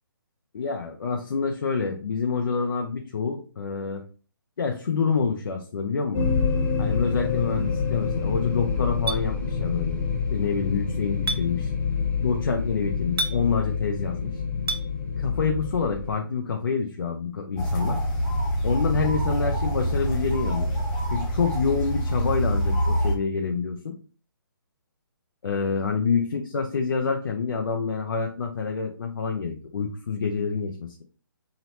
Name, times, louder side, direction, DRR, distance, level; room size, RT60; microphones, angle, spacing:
voice 1, 0.5-4.0 4.6-6.3 6.8-10.0 10.3-11.7 12.2-14.4 15.2-18.0 18.6-20.7 21.1-24.0 25.4-31.0, left 5 dB, 65° left, 3 dB, 0.5 m, -27 dB
sound 1, 6.1-16.1, left 5 dB, 40° left, 1.0 m, -27 dB
Chink clink, 9.1-9.2 11.3-11.4 13.2-13.4 14.7-14.8, right 2 dB, 80° right, 0.5 m, -27 dB
sound 2, 17.6-23.2, equal, 15° left, 1.3 m, -25 dB
2.8 x 2.0 x 3.0 m, 0.38 s
figure-of-eight pair, 140°, 12 cm